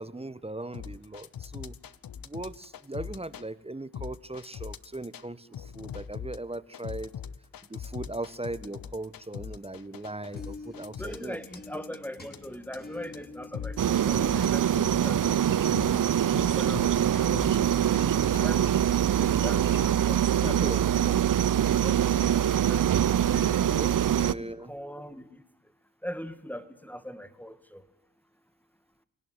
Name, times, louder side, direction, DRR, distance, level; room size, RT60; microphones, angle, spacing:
voice 1, 0.0-1.8 2.2-7.1 7.7-11.4 11.7-11.8 20.4-20.8 23.7-24.7, right 2 dB, 10° right, 17 dB, 1.3 m, -38 dB
sound 1, 0.7-3.5 3.9-5.2 5.5-18.5 19.1-19.9, left 8 dB, 45° left, 1.1 m, -41 dB
sound 2, 10.3-19.7, left 2 dB, 20° left, 5.5 m, -46 dB
voice 2, 11.0-15.8 16.3-16.9 17.3-17.4 18.4-18.8 19.2-20.7 21.8-22.9 23.3-24.3 24.7-25.4 26.0-27.8, equal, 5° left, 13 dB, 2.3 m, -41 dB
sound 3, 13.8-24.3, right 10 dB, 40° right, 0.9 m, -24 dB
25.5 x 18.5 x 9.6 m, 0.79 s
hypercardioid pair, 40°, 48 cm